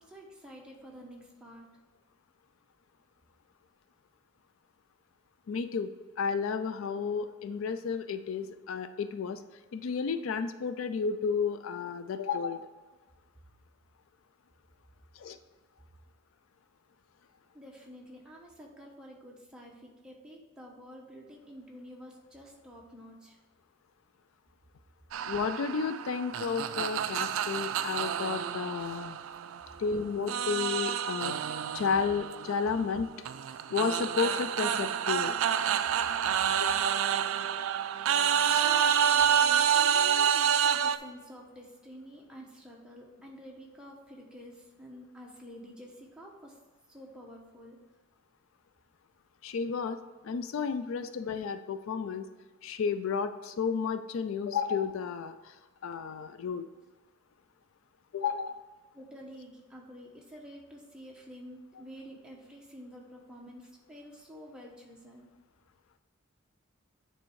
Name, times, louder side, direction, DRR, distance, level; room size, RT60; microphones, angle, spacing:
voice 1, 0.0-1.7 17.5-23.4 38.6-46.6 46.9-47.8 58.9-65.3, equal, 5° right, -3 dB, 1.0 m, -49 dB
voice 2, 5.5-5.9 6.2-9.4 9.7-12.7 15.2-15.4 25.2-29.2 29.8-31.3 31.7-33.1 33.7-35.4 36.6-37.0 38.5-38.7 49.4-50.0 50.2-52.2 52.6-55.5 55.8-56.7 58.1-58.6, left 5 dB, 65° left, 10 dB, 0.3 m, -32 dB
sound 1, 25.1-29.8 30.3-41.0, right 8 dB, 65° right, 0.3 m, -28 dB
8.7 x 3.3 x 4.6 m, 1.3 s
head